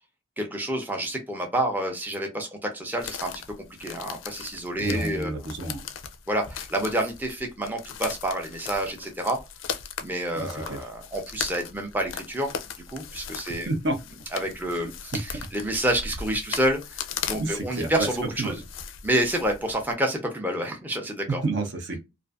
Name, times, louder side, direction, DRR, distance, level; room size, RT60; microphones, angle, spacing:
voice 1, 0.4-3.3 3.8-5.5 6.3-9.4 10.0-12.5 12.9-13.7 14.3-18.6 19.0-21.4, right 1 dB, 10° right, 0.5 m, -28 dB
sound 1, 3.0-19.9, left 7 dB, 80° left, 0.4 m, -38 dB
voice 2, 4.8-5.8 10.4-10.8 13.7-14.0 14.8-14.9 17.4-18.1 18.4-18.6 21.3-22.0, right 2 dB, 65° right, 0.7 m, -29 dB
2.4 x 2.4 x 2.3 m
head